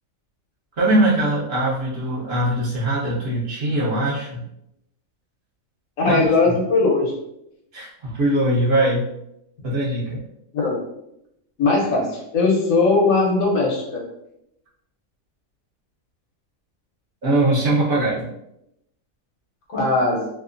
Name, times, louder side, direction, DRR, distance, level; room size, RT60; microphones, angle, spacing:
voice 1, 0.8-4.4 6.1-6.6 7.7-9.1 9.6-10.2 17.2-18.2, right 1 dB, 55° right, -6 dB, 0.8 m, -21 dB
voice 2, 6.0-7.1 10.5-10.8 11.6-14.0 19.7-20.3, left 3 dB, 75° left, -2 dB, 1.2 m, -19 dB
2.8 x 2.0 x 2.5 m, 0.82 s
omnidirectional pair, 1.4 m